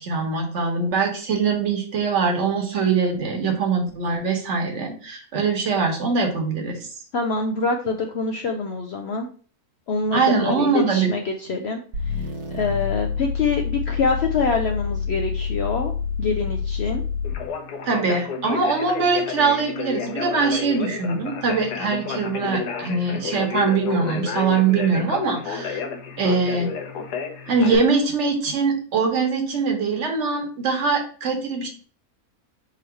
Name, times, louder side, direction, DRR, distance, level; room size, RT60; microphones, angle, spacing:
voice 1, 0.0-6.8 10.1-11.1 17.8-25.8 26.2-26.7 27.5-31.7, right 4 dB, 50° right, 1 dB, 1.4 m, -22 dB
voice 2, 7.1-9.3 9.9-11.8 12.1-12.2 12.5-17.0, left 4 dB, 65° left, 3 dB, 0.6 m, -25 dB
sound 1, 11.9-17.5, left 6 dB, 75° right, 1.3 m, -27 dB
Conversation, 17.2-27.8, left 6 dB, 90° left, 1.3 m, -31 dB
3.8 x 3.1 x 4.3 m, 0.42 s
omnidirectional pair, 1.6 m